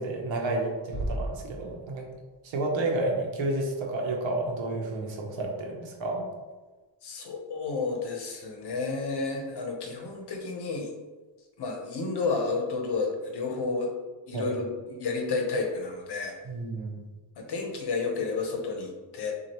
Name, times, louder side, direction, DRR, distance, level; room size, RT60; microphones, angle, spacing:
voice 1, 0.0-2.1 2.4-6.2 14.3-14.5 16.5-17.0, right 2 dB, 75° right, 0 dB, 1.0 m, -30 dB
sound 1, 0.9-2.5, right 1 dB, 50° right, 1.1 m, -35 dB
voice 2, 7.0-10.9 11.6-13.9 14.3-16.3 17.4-19.3, left 4 dB, 60° left, 2 dB, 0.9 m, -31 dB
6.2 x 2.5 x 2.9 m, 1.3 s
wide cardioid pair, 170°, 46 cm